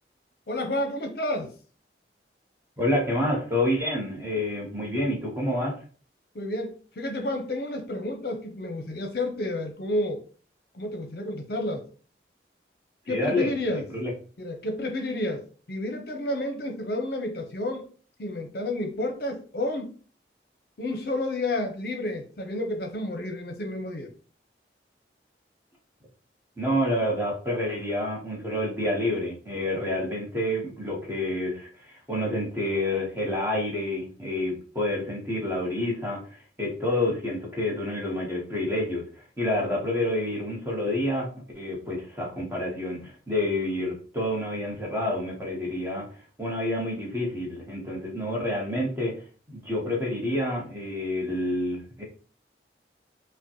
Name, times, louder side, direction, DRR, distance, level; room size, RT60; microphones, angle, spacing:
voice 1, 0.5-1.5 6.3-10.2 10.7-11.9 13.1-13.9 14.4-17.9 18.2-20.0 20.8-24.1, left 1 dB, 55° left, 4 dB, 0.6 m, -30 dB
voice 2, 2.8-5.8 13.1-14.1 26.6-39.0 39.4-41.3 41.5-46.0 46.4-49.1 49.5-52.0, left 1 dB, 15° right, -2 dB, 1.0 m, -28 dB
4.9 x 2.2 x 2.9 m, 0.40 s
head